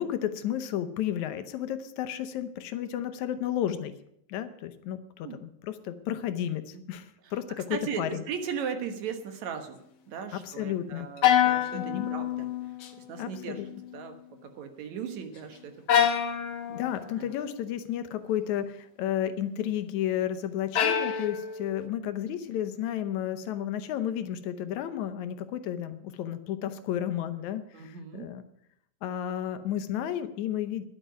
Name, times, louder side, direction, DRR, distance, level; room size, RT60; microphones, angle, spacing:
voice 1, 0.0-3.9 4.3-8.2 10.3-11.1 11.7-12.1 13.2-13.7 16.7-28.4 29.0-30.8, left 11 dB, 80° left, 11 dB, 2.2 m, -32 dB
voice 2, 7.7-9.8 10.1-12.5 13.1-13.6 13.9-14.2 14.5-16.0 16.7-16.8 17.2-17.3 27.7-28.3, right 7 dB, 70° right, 7 dB, 2.6 m, -37 dB
sound 1, 11.2-12.9 13.2-13.8 15.9-17.1 20.8-21.9, left 9 dB, 60° left, 1.4 m, -26 dB
11.0 x 7.8 x 9.2 m, 0.75 s
omnidirectional pair, 3.4 m